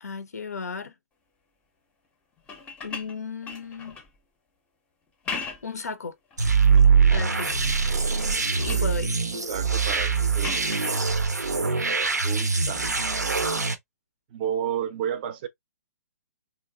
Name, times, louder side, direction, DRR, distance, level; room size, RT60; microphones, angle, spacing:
voice 1, 0.0-0.9 2.8-4.0 5.6-6.2 7.1-7.5 8.6-9.1, left 5 dB, 70° left, 0.5 m, -34 dB
sound 1, 2.4-4.2 5.1-5.8 6.3-6.9 7.4-7.9 8.2-9.0 10.4-11.0 12.7-12.9, left 5 dB, 15° left, 0.5 m, -38 dB
sound 2, 6.4-13.7, right 5 dB, 85° right, 0.5 m, -23 dB
voice 2, 9.5-10.6 12.2-12.9 14.3-15.5, right 9 dB, 35° right, 0.5 m, -31 dB
3.0 x 2.3 x 2.2 m
figure-of-eight pair, 125°, 9 cm